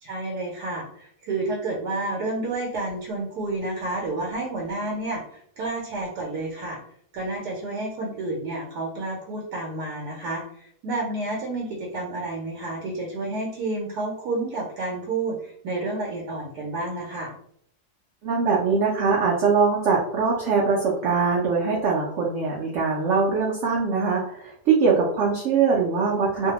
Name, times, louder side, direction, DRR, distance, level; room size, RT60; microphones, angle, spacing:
voice 1, 0.0-6.8 7.1-17.3, right 2 dB, 85° right, -1 dB, 1.2 m, -30 dB
voice 2, 18.2-26.5, right 5 dB, 70° right, -3 dB, 0.7 m, -22 dB
2.6 x 2.1 x 2.8 m, 0.68 s
omnidirectional pair, 1.7 m